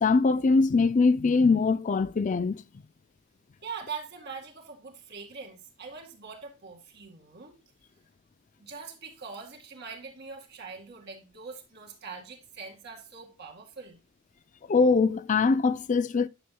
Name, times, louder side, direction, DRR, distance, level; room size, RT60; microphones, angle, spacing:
voice 1, 0.0-2.6 14.7-16.3, left 4 dB, 35° left, 0.4 m, -22 dB
voice 2, 3.6-7.6 8.6-14.0, right 5 dB, 55° right, 2.1 m, -42 dB
10.5 x 7.2 x 2.2 m
head